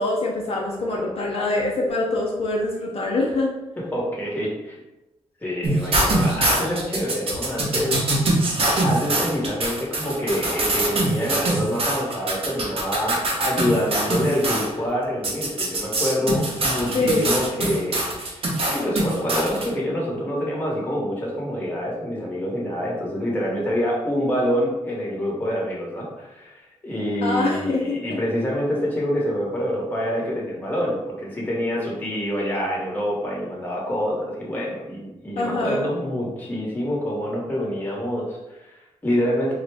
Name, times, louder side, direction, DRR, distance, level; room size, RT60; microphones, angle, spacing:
voice 1, 0.0-3.5 16.9-17.4 27.2-28.0 35.4-35.9, left 2 dB, 55° left, -3 dB, 0.6 m, -24 dB
voice 2, 3.8-4.7 5.4-8.1 8.8-39.5, equal, 15° left, -3 dB, 1.0 m, -26 dB
sound 1, 5.6-14.7 15.2-19.6, right 1 dB, 55° right, 0.8 m, -23 dB
3.9 x 2.1 x 3.3 m, 0.99 s
wide cardioid pair, 120°, 12 cm